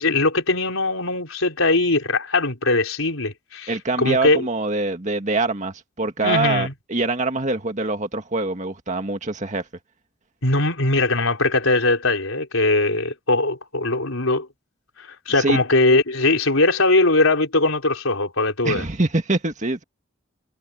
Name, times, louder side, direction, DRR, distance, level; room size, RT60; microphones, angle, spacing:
voice 1, 0.0-4.5 6.2-6.7 10.4-14.5 15.0-18.8, left 2 dB, 80° left, 4.1 m, -20 dB
voice 2, 3.7-9.6 15.4-15.6 18.6-19.8, right 2 dB, 35° right, 1.9 m, -24 dB
head